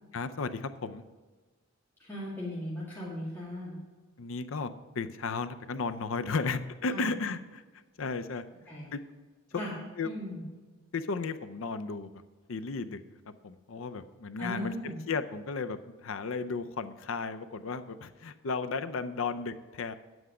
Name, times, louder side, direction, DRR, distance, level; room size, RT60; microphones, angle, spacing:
voice 1, 0.1-1.0 4.2-7.6 8.0-8.4 8.9-9.0 9.5-9.6 10.0-10.1 10.9-12.1 12.5-13.0 13.4-20.0, left 4 dB, 75° left, 10 dB, 0.6 m, -34 dB
voice 2, 2.0-3.8 6.9-7.1 8.7-8.9 9.5-9.7 10.0-10.4 14.4-15.0, left 1 dB, 10° left, -8 dB, 2.1 m, -37 dB
9.4 x 8.0 x 5.0 m, 1.3 s
head